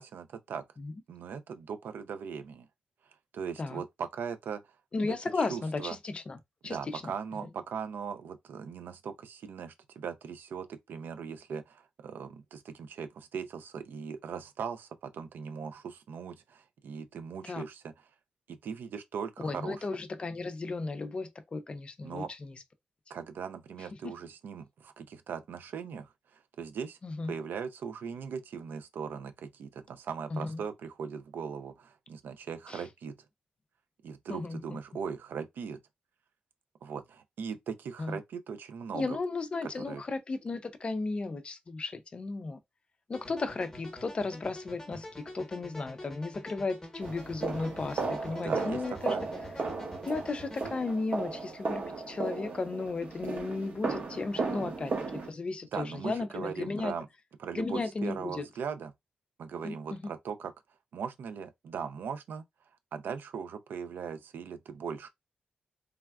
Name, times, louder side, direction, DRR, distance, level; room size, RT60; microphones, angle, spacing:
voice 1, 0.0-0.6 1.1-2.7 3.3-4.6 5.4-6.0 6.6-17.8 18.5-19.9 22.0-22.3 23.1-27.0 27.3-33.1 34.0-35.8 36.8-39.2 39.6-40.0 48.4-48.8 49.1-49.2 54.6-54.7 55.7-57.1 57.4-58.9 59.4-60.5 60.9-62.4 62.9-65.1, right 6 dB, 75° right, 0.4 m, -39 dB
voice 2, 4.9-6.4 6.6-7.1 17.4-17.6 19.4-22.5 24.0-24.1 27.0-27.3 30.3-30.6 32.7-32.8 34.3-34.8 38.0-38.2 38.9-42.6 43.1-49.1 50.1-57.0 57.5-58.4 59.6-60.1, left 3 dB, 30° left, 0.4 m, -35 dB
sound 1, 43.1-50.7, left 1 dB, 15° left, 1.0 m, -47 dB
sound 2, 47.0-55.3, right 4 dB, 55° right, 0.9 m, -35 dB
3.3 x 2.3 x 2.2 m
wide cardioid pair, 130°, 3 cm